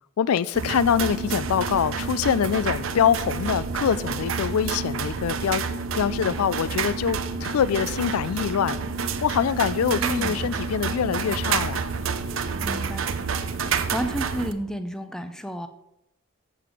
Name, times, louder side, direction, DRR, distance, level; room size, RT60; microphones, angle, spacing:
voice 1, 0.2-5.6 5.9-8.8 9.2-11.9, left 8 dB, 90° left, 0.4 m, -24 dB
sound 1, 0.5-14.5, right 5 dB, 65° right, 0.6 m, -29 dB
voice 2, 10.0-10.3 12.6-13.1 13.5-15.7, right 1 dB, 5° left, 0.5 m, -31 dB
7.8 x 6.6 x 4.9 m
head